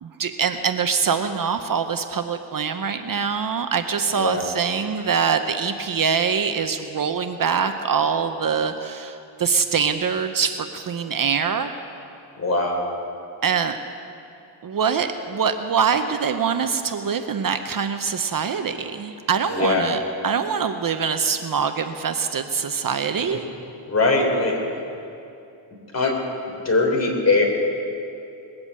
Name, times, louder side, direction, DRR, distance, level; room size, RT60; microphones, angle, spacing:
voice 1, 0.0-11.7 13.4-13.8 14.6-23.4, right 6 dB, 50° right, 8 dB, 0.8 m, -24 dB
voice 2, 4.1-4.4 12.4-12.8 19.5-19.9 23.9-24.5 25.9-26.1 26.7-27.4, left 3 dB, 35° left, 0 dB, 3.6 m, -20 dB
21.0 x 7.9 x 8.4 m, 2.7 s
cardioid pair, 90°, 44 cm